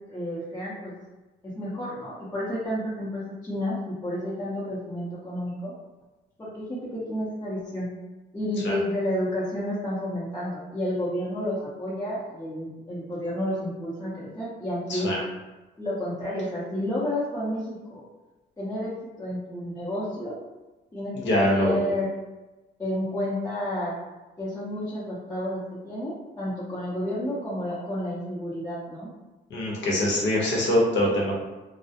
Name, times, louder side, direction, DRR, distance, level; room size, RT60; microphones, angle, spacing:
voice 1, 0.1-0.9 1.4-5.7 6.4-7.9 8.3-15.1 15.8-18.0 18.6-18.9 19.2-20.3 20.9-22.2 22.8-23.9 24.4-29.1, left 1 dB, 15° left, -10 dB, 0.6 m, -30 dB
voice 2, 21.3-21.9 29.5-31.3, left 1 dB, 65° left, -3 dB, 0.8 m, -24 dB
2.3 x 2.0 x 2.7 m, 1.1 s
cardioid pair, 90°, 20 cm